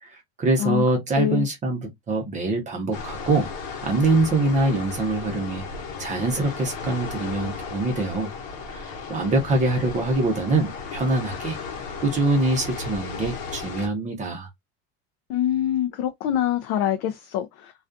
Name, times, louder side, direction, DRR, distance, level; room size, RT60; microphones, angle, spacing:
voice 1, 0.0-3.5 3.8-5.6 6.0-8.3 8.7-11.6 12.0-14.5, right 2 dB, 25° right, 0.7 m, -24 dB
sound 1, 2.9-13.9, left 5 dB, 80° left, 1.0 m, -35 dB
voice 2, 15.3-17.7, left 10 dB, 55° left, 0.4 m, -24 dB
2.3 x 2.3 x 2.4 m
cardioid pair, 150°, 30 cm